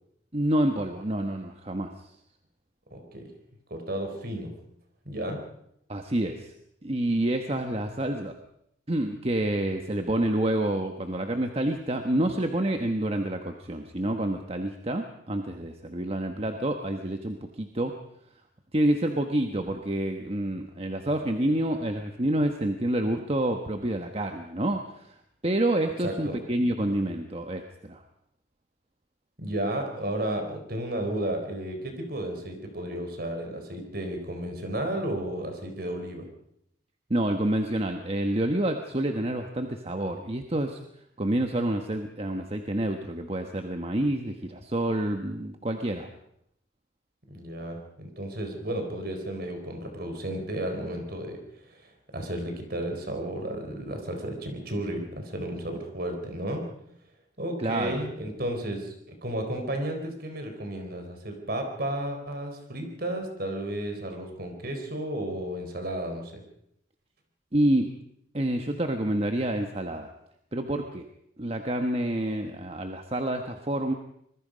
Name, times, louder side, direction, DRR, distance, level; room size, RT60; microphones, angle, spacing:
voice 1, 0.3-1.9 5.9-6.5 6.8-8.3 8.9-17.9 18.7-25.1 25.4-28.0 37.1-40.8 41.2-46.1 57.6-58.0 67.5-67.9 68.3-70.1 70.5-71.0 71.4-73.9, right 1 dB, 30° right, 5 dB, 1.2 m, -28 dB
voice 2, 2.9-3.3 3.7-4.5 5.1-5.4 26.0-26.4 29.4-36.3 47.3-51.4 51.7-56.7 57.4-66.4, right 1 dB, 55° right, 4 dB, 4.2 m, -33 dB
26.0 x 21.0 x 5.2 m, 0.73 s
head